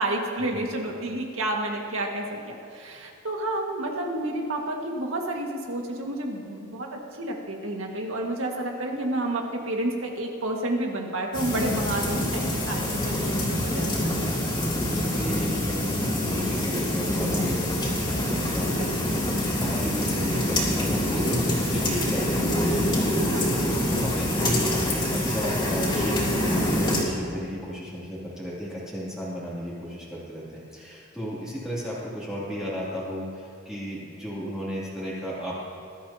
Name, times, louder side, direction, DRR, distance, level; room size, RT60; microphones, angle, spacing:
voice 1, 0.0-14.3 18.8-19.2 23.3-23.7, right 1 dB, 80° right, 1 dB, 1.9 m, -30 dB
sound 1, 11.3-27.0, left 1 dB, 25° left, 2.9 m, -25 dB
voice 2, 12.0-12.3 14.5-35.6, equal, 5° right, -9 dB, 2.8 m, -34 dB
21.0 x 12.5 x 2.9 m, 2.6 s
head